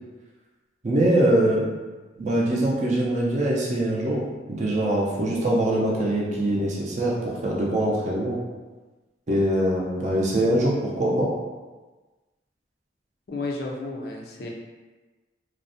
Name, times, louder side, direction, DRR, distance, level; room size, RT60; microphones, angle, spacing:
voice 1, 0.8-1.7 2.2-4.2 4.5-8.4 9.3-11.3, right 1 dB, 40° right, -4 dB, 0.4 m, -23 dB
voice 2, 13.3-14.5, left 2 dB, 55° left, -1 dB, 0.3 m, -32 dB
2.5 x 2.0 x 2.6 m, 1.3 s
head